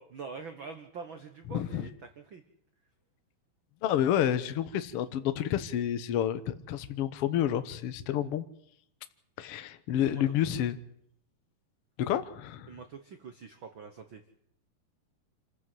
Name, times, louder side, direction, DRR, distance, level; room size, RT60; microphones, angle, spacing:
voice 1, 0.0-2.4 10.0-10.2 12.7-14.2, right 5 dB, 85° right, 8 dB, 1.1 m, -44 dB
voice 2, 1.5-1.9 3.8-8.4 9.4-10.8 12.0-12.7, left 10 dB, 75° left, 11 dB, 1.3 m, -29 dB
26.5 x 14.5 x 7.8 m, 0.71 s
omnidirectional pair, 4.3 m